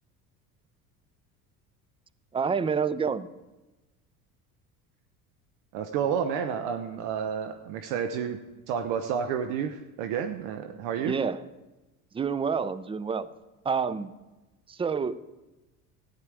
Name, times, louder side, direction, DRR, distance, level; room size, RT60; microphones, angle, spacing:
voice 1, 2.3-3.3 11.0-11.4 12.1-13.3 13.6-14.1 14.7-15.1, right 6 dB, 10° right, 16 dB, 0.4 m, -28 dB
voice 2, 5.7-8.4 8.7-11.1, right 7 dB, 65° right, 7 dB, 0.9 m, -30 dB
14.0 x 9.7 x 4.8 m, 1.1 s
hypercardioid pair, 70°, 46 cm